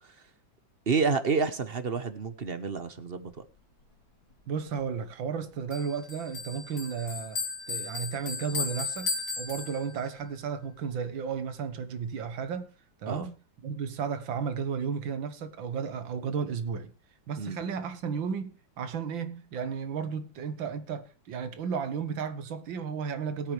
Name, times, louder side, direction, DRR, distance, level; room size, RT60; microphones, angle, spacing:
voice 1, 0.9-3.5 13.1-13.3 17.4-17.6, right 5 dB, 35° right, 1.1 m, -29 dB
voice 2, 4.5-7.4 7.7-12.7 13.0-13.4 13.6-16.9 17.3-23.5, right 6 dB, 80° right, 2.0 m, -33 dB
Bell, 5.7-10.2, left 4 dB, 85° left, 4.0 m, -35 dB
21.5 x 8.4 x 3.3 m
omnidirectional pair, 2.1 m